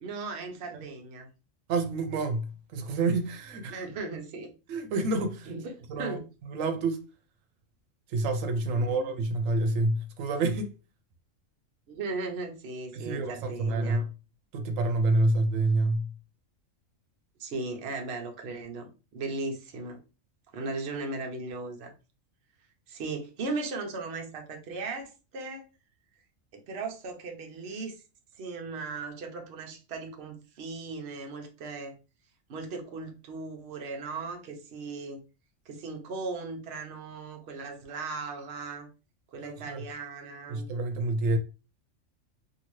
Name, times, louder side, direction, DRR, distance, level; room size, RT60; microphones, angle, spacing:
voice 1, 0.0-1.3 3.7-4.5 5.4-5.6 6.0-6.3 8.6-9.1 11.9-14.0 17.4-20.0 20.5-21.9 22.9-25.7 26.5-27.9 28.4-31.9 32.5-35.2 35.7-38.9 39.3-40.7, right 3 dB, 60° right, 0.9 m, -37 dB
voice 2, 1.7-3.8 4.7-5.5 5.9-7.0 8.1-10.7 12.9-14.1 14.5-16.1 39.4-39.8 40.5-41.4, right 2 dB, 90° right, 1.0 m, -28 dB
2.8 x 2.7 x 3.0 m
omnidirectional pair, 1.3 m